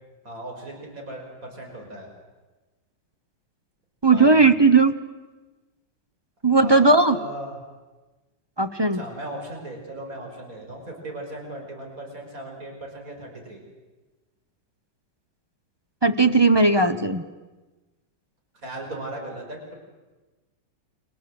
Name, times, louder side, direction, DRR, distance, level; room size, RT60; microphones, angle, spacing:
voice 1, 0.2-2.1 4.1-4.5 6.6-7.6 8.9-13.6 18.6-19.7, right 1 dB, 45° right, 2 dB, 5.6 m, -37 dB
voice 2, 4.0-4.9 6.4-7.2 8.6-9.0 16.0-17.2, right 3 dB, 25° right, 9 dB, 0.6 m, -17 dB
30.0 x 25.0 x 7.8 m, 1.2 s
omnidirectional pair, 2.1 m